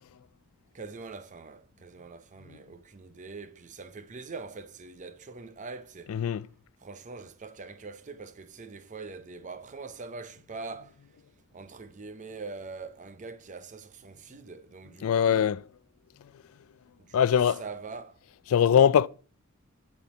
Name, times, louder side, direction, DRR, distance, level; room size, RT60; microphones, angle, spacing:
voice 1, 0.7-6.2 6.8-11.0 11.5-15.6 17.1-18.2, right 4 dB, 35° right, 0.6 m, -43 dB
voice 2, 6.1-6.4 15.0-15.6 17.1-17.6 18.5-19.1, left 8 dB, 80° left, 0.3 m, -21 dB
10.5 x 4.3 x 4.9 m
head